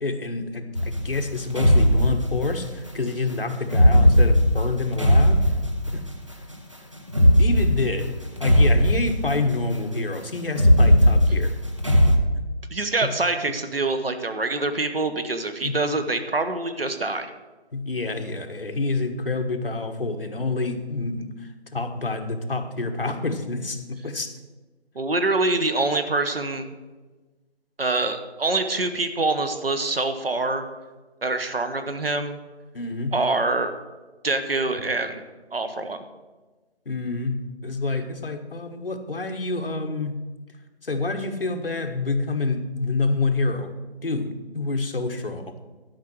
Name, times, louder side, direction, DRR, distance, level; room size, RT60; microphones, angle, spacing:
voice 1, 0.0-5.4 5.9-6.0 7.4-11.5 13.0-13.1 15.6-15.8 17.7-24.3 32.7-33.2 34.7-34.9 36.8-40.2 40.8-43.7 44.0-45.5, left 3 dB, 55° left, 6 dB, 1.3 m, -28 dB
sound 1, 0.8-2.7 3.7-6.1 7.1-9.6 10.5-12.2, equal, 30° right, 0.7 m, -18 dB
voice 2, 12.7-17.3 24.9-26.7 27.8-30.6 31.2-32.4 33.1-33.7 34.2-35.2 35.5-36.0, right 2 dB, 60° right, 9 dB, 1.2 m, -25 dB
12.0 x 5.5 x 7.7 m, 1.2 s
figure-of-eight pair, 175°, 32 cm